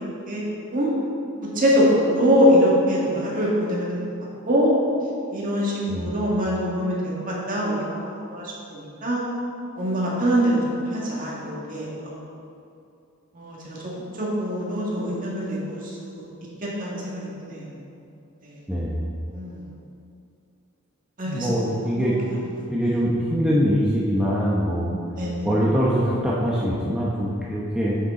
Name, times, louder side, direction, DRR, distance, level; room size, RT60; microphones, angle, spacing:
voice 1, 1.6-3.9 4.5-4.7 5.3-7.0 7.3-9.2 9.8-12.2 13.3-13.8 14.2-16.2 16.8-17.7 18.4-18.5 19.3-19.6 21.2-21.7 22.0-22.1 25.2-25.5, equal, 40° right, -5 dB, 1.9 m, -23 dB
voice 2, 18.7-19.1 21.2-22.2 22.7-24.9 25.4-28.0, equal, 5° right, -7 dB, 0.8 m, -23 dB
9.2 x 6.6 x 3.8 m, 2.6 s
head